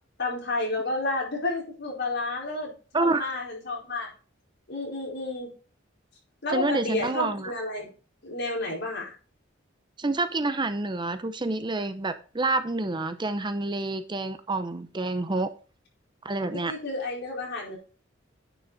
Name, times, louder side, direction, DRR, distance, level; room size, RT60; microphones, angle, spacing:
voice 1, 0.2-4.1 4.7-5.5 6.4-7.9 8.2-9.1 16.5-17.8, left 2 dB, 60° left, -2 dB, 4.7 m, -31 dB
voice 2, 2.9-3.3 6.5-7.5 10.0-15.5 16.2-16.7, right 2 dB, 25° right, 10 dB, 0.7 m, -28 dB
9.7 x 6.3 x 4.1 m, 0.36 s
head